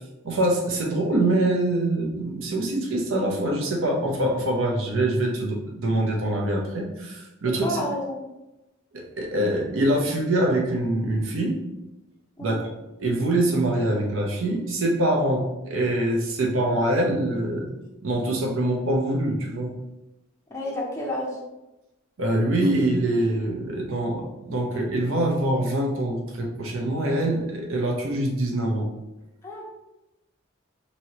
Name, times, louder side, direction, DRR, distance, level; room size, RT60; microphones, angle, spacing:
voice 1, 0.2-7.8 8.9-11.6 12.4-12.6 13.0-17.7 18.0-19.7 22.2-28.9, right 1 dB, 75° right, 0 dB, 0.7 m, -24 dB
voice 2, 7.6-8.2 12.4-12.6 20.5-21.4 29.4-29.6, left 1 dB, 15° left, -3 dB, 0.4 m, -30 dB
3.1 x 2.8 x 2.8 m, 0.97 s
head